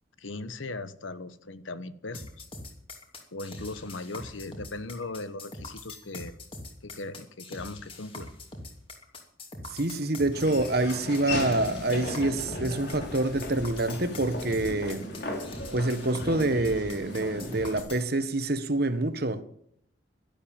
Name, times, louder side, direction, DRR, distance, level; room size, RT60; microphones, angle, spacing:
voice 1, 0.2-2.4 3.3-6.3 6.8-8.3, left 2 dB, 85° left, 1.2 m, -38 dB
sound 1, 2.1-18.1, left 2 dB, 30° left, 2.8 m, -43 dB
voice 2, 9.7-15.0 15.7-19.4, right 2 dB, 55° right, 1.4 m, -27 dB
Laughter / Walk footsteps, 10.3-17.8, left 2 dB, 60° left, 4.3 m, -37 dB
12.0 x 12.0 x 7.3 m
head